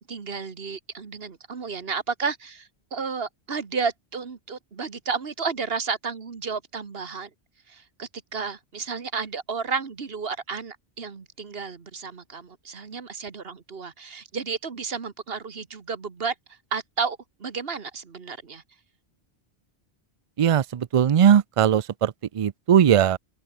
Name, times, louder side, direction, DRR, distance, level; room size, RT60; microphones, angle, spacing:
voice 1, 0.0-7.3 7.7-18.6, right 5 dB, 60° right, 1.7 m, -32 dB
voice 2, 20.4-23.2, right 9 dB, 45° right, 0.4 m, -19 dB
open air
omnidirectional pair, 1.1 m